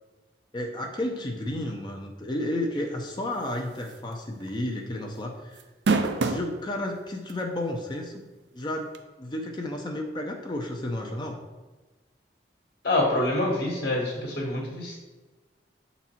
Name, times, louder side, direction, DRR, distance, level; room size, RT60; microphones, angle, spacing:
voice 1, 0.5-5.6 6.2-8.3 8.5-8.9 9.2-11.4, left 1 dB, 25° left, 2 dB, 0.6 m, -32 dB
sound 1, 3.9-4.1 4.5-4.6 5.6-6.5 7.3-7.4 8.9-9.0, right 3 dB, 70° right, 0.5 m, -24 dB
voice 2, 12.8-15.0, left 1 dB, 55° left, -2 dB, 1.4 m, -26 dB
7.1 x 4.1 x 4.3 m, 1.2 s
head